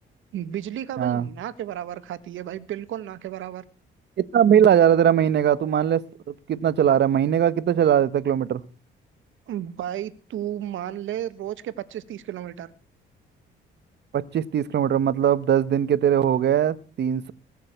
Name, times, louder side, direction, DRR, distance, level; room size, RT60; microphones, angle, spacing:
voice 1, 0.3-3.6 9.5-12.7, right 11 dB, 80° right, 1.5 m, -33 dB
voice 2, 1.0-1.3 4.3-8.6 14.1-17.3, right 9 dB, 60° right, 1.2 m, -20 dB
20.0 x 6.7 x 8.1 m
cardioid pair, 90°, 20 cm